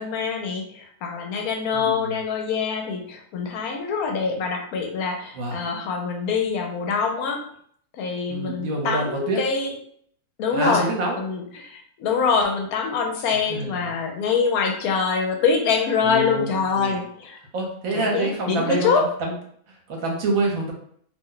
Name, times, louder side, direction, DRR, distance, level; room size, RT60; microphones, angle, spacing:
voice 1, 0.0-7.4 8.0-9.7 10.4-10.9 11.1-17.4 17.9-19.0, left 5 dB, 80° left, 3 dB, 1.1 m, -24 dB
voice 2, 1.7-2.2 5.3-5.6 8.3-9.4 10.5-11.2 13.3-13.9 16.0-17.0 17.5-19.3 19.7-20.7, right 2 dB, 70° right, 0 dB, 1.1 m, -27 dB
2.7 x 2.1 x 3.7 m, 0.63 s
omnidirectional pair, 1.6 m